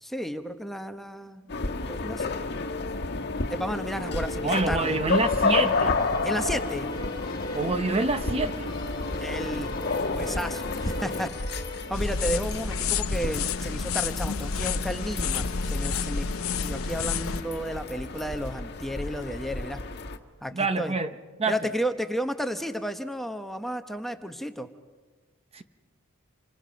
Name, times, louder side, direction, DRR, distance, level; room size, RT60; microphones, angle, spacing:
voice 1, 0.0-2.4 3.5-5.0 6.2-6.9 9.2-11.3 11.9-16.3 16.6-19.8 20.4-20.9 21.5-24.7, equal, ahead, 7 dB, 0.9 m, -33 dB
sound 1, 1.5-20.2, left 3 dB, 50° left, 1.4 m, -31 dB
voice 2, 4.4-6.0 7.5-8.7 20.5-21.1 21.4-21.6 25.5-25.6, right 3 dB, 30° right, 9 dB, 0.8 m, -26 dB
sound 2, 5.1-12.9, equal, 20° left, 2.3 m, -41 dB
sound 3, 11.9-17.4, left 5 dB, 75° left, 0.8 m, -29 dB
29.0 x 25.0 x 5.2 m, 1.4 s
head